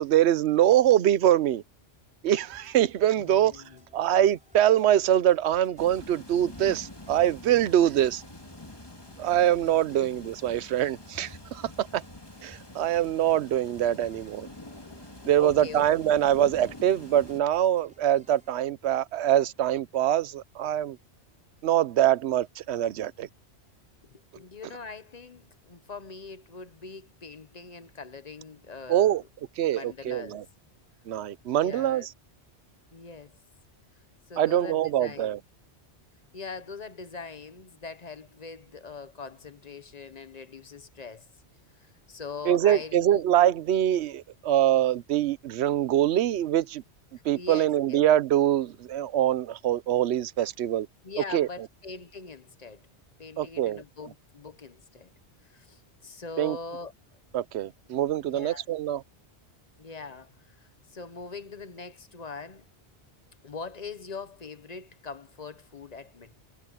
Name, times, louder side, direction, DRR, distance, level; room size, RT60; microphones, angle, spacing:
voice 1, 0.0-1.6 2.2-3.6 3.9-8.2 9.2-12.0 12.4-14.5 15.3-21.0 21.6-23.3 28.9-29.2 29.6-30.4 31.1-32.1 34.4-35.4 42.4-46.8 47.2-50.9 51.3-51.5 53.4-53.8 56.4-56.6 57.3-59.0, right 11 dB, 75° right, 0.9 m, -24 dB
sound 1, 2.5-18.5, equal, 5° right, 5.4 m, -60 dB
voice 2, 3.2-3.8 9.9-10.2 14.9-15.8 24.4-29.3 29.7-30.4 31.5-32.1 32.9-33.3 34.3-35.4 36.3-41.3 41.8-43.2 47.4-48.0 51.0-52.9 53.2-55.1 55.4-56.9 57.9-58.6 59.8-60.3 60.9-62.7 63.4-66.3, left 4 dB, 40° left, 0.9 m, -42 dB
sound 2, 5.8-17.4, left 2 dB, 20° left, 2.1 m, -46 dB
omnidirectional pair, 1.2 m